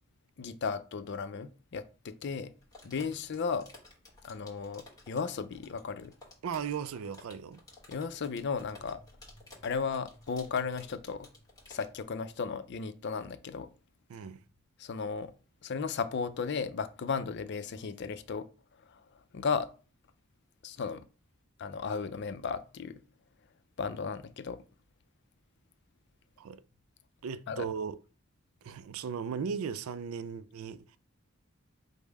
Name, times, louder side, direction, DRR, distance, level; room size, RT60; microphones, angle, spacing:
voice 1, 0.4-2.5 2.8-3.7 4.2-6.1 7.9-9.0 9.6-11.3 11.7-13.7 14.8-15.3 15.6-18.5 18.9-19.0 19.3-19.7 20.6-21.0 21.6-23.0 23.8-24.6 27.5-27.7, left 5 dB, 55° left, 0.5 m, -35 dB
sound 1, 2.6-12.0, left 2 dB, 15° left, 1.3 m, -55 dB
voice 2, 6.4-7.6 14.1-14.4 26.4-26.6 27.2-28.0 28.6-31.0, right 6 dB, 80° right, 0.4 m, -37 dB
5.2 x 2.1 x 4.7 m
head